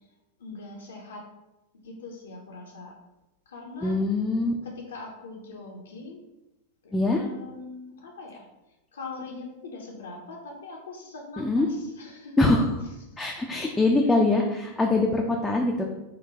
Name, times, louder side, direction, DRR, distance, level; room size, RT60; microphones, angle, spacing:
voice 1, 0.4-1.2 1.8-3.0 3.5-3.9 4.6-6.2 6.8-8.5 8.9-12.5 13.1-13.2 13.7-13.8, left 3 dB, 65° left, 0 dB, 0.6 m, -41 dB
voice 2, 3.8-4.5 6.9-7.2 11.4-11.7 12.4-12.6 13.2-15.8, left 2 dB, 10° left, -1 dB, 0.3 m, -23 dB
3.8 x 2.2 x 3.4 m, 0.96 s
figure-of-eight pair, 90°, 0 cm